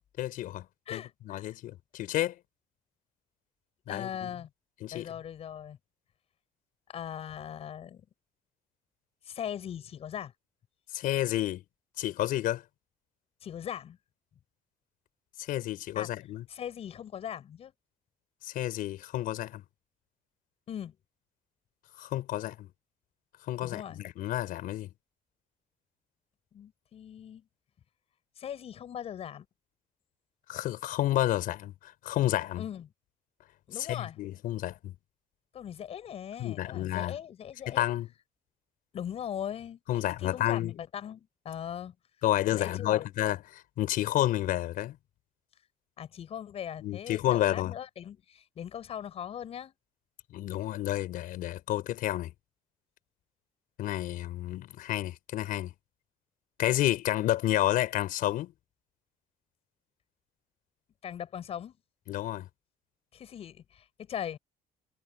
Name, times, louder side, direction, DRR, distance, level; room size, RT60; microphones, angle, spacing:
voice 1, 0.2-0.6 0.9-2.3 3.9-4.3 4.8-5.1 10.9-11.6 12.0-12.6 15.4-16.4 18.4-19.6 22.0-22.7 23.5-24.9 30.5-32.6 33.8-34.9 36.4-37.1 37.7-38.1 39.9-40.7 42.2-45.0 46.8-47.7 50.3-52.3 53.8-55.7 56.6-58.5 62.1-62.5, left 14 dB, 65° left, 5.1 m, -30 dB
voice 2, 0.9-1.6 3.9-4.5 4.9-5.8 6.9-8.1 9.2-10.3 13.4-14.0 15.9-16.1 16.5-17.7 20.7-20.9 23.6-24.0 26.5-27.5 28.4-29.5 32.6-32.9 33.7-34.2 35.5-37.8 38.9-41.9 42.5-43.0 46.0-49.7 61.0-61.7 63.1-64.4, left 9 dB, 40° left, 7.8 m, -40 dB
cardioid pair, 180°, 15 cm